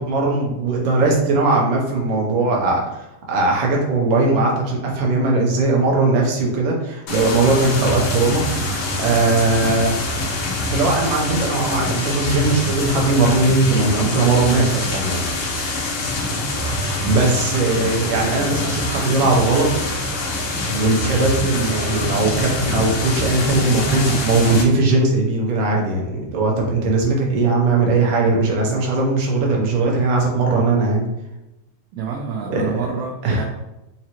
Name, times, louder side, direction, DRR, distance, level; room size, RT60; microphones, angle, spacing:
voice 1, 0.0-2.9 3.3-10.0 10.7-15.2 16.7-20.0 20.7-31.0 32.5-32.8 33.2-33.4, right 3 dB, 75° right, -1 dB, 1.4 m, -19 dB
sound 1, 7.1-24.6, left 1 dB, 70° left, 2.0 m, -24 dB
voice 2, 31.9-33.4, right 6 dB, 90° right, 1 dB, 1.3 m, -28 dB
5.1 x 2.9 x 2.9 m, 0.95 s
omnidirectional pair, 3.4 m